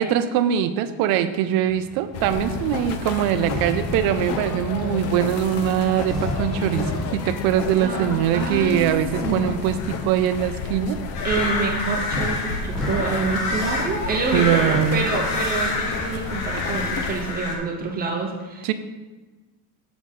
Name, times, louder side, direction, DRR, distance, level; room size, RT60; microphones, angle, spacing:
voice 1, 0.0-11.0 14.3-15.1 18.6-18.7, right 10 dB, 50° right, 11 dB, 0.5 m, -22 dB
sound 1, 1.4-14.8, equal, ahead, 1.3 m, -35 dB
sound 2, 2.1-17.3, left 5 dB, 35° left, 0.4 m, -31 dB
voice 2, 7.7-8.1 8.3-8.9 9.2-9.4 11.2-18.7, right 4 dB, 20° right, 1 dB, 0.8 m, -27 dB
sound 3, 11.1-17.6, left 2 dB, 75° left, 1.5 m, -28 dB
7.0 x 3.9 x 6.4 m, 1.2 s
cardioid pair, 170°, 47 cm